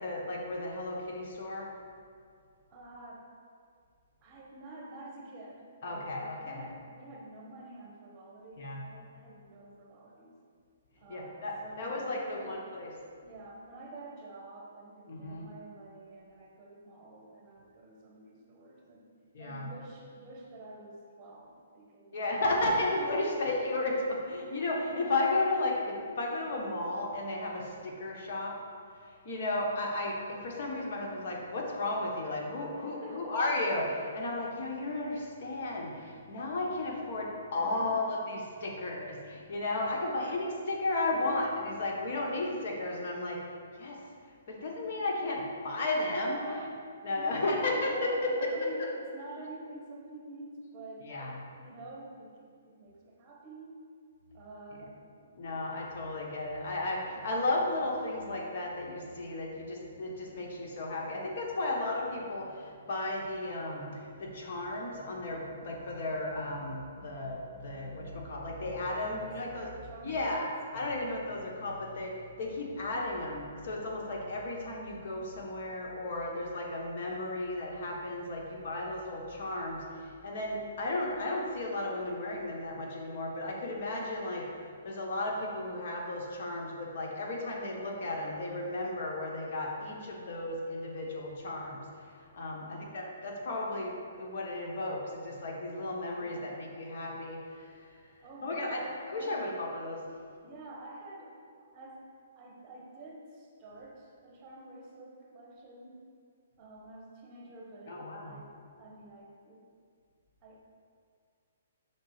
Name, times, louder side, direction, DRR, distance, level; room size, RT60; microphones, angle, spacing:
voice 1, 0.0-1.7 5.8-6.6 8.6-8.8 11.1-12.9 15.1-15.5 19.3-19.7 22.1-28.5 29.2-43.4 43.8-44.0 44.5-46.4 47.0-48.5 48.8-48.9 51.1-51.4 55.4-69.7 70.0-70.4 70.7-84.5 84.8-91.8 92.3-97.4 98.4-100.0 107.9-108.4, left 2 dB, 50° left, -2 dB, 1.4 m, -34 dB
voice 2, 2.7-3.3 4.2-10.4 11.0-12.6 13.2-19.1 19.4-22.2 23.2-23.4 32.7-33.6 37.6-38.0 39.8-40.6 46.3-46.7 47.1-53.8 54.3-55.8 68.9-70.5 92.5-92.9 96.1-96.6 98.2-99.4 100.4-102.0 102.3-106.0 106.6-108.5 108.8-109.7 110.4-110.6, right 2 dB, 30° right, -2 dB, 1.4 m, -48 dB
6.4 x 3.9 x 5.0 m, 2.2 s
hypercardioid pair, 145°, 0 cm